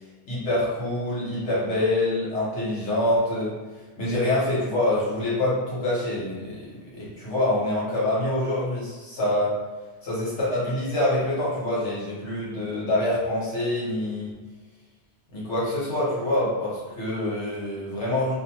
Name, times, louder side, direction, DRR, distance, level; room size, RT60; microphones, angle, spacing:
voice 1, 0.3-3.5 4.0-6.7 6.9-9.5 10.0-14.3 15.3-18.3, left 1 dB, 75° left, -7 dB, 1.3 m, -25 dB
2.6 x 2.1 x 2.9 m, 1.3 s
omnidirectional pair, 1.2 m